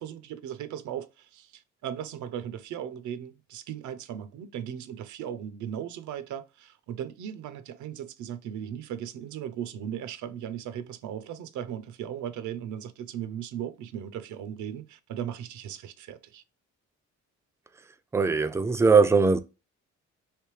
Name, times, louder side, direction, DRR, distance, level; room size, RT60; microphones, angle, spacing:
voice 1, 0.0-16.4, right 9 dB, 75° right, 0.5 m, -37 dB
voice 2, 18.1-19.4, right 4 dB, 10° right, 0.3 m, -20 dB
3.3 x 2.7 x 3.1 m
cardioid pair, 90°, 30 cm